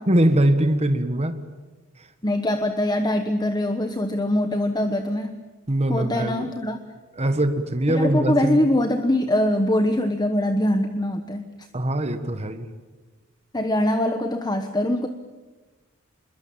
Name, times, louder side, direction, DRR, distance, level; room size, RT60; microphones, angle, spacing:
voice 1, 0.1-1.4 5.7-6.5 7.2-8.6 11.7-12.7, right 1 dB, 30° right, 9 dB, 1.4 m, -22 dB
voice 2, 2.2-5.4 5.9-6.8 7.9-11.5 13.5-15.1, left 1 dB, 20° left, 8 dB, 1.1 m, -23 dB
27.0 x 22.0 x 8.7 m, 1.3 s
head